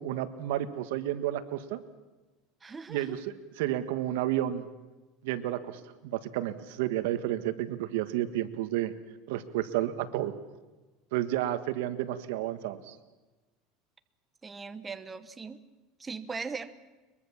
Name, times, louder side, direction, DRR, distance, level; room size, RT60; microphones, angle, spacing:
voice 1, 0.0-1.8 2.9-4.7 5.2-8.9 9.3-10.3 11.1-13.0, right 13 dB, 80° right, 11 dB, 1.6 m, -31 dB
voice 2, 2.6-3.2 14.4-15.6 16.0-16.7, right 4 dB, 15° right, 11 dB, 1.0 m, -39 dB
22.5 x 22.5 x 7.3 m, 1.2 s
supercardioid pair, 150°, 0 cm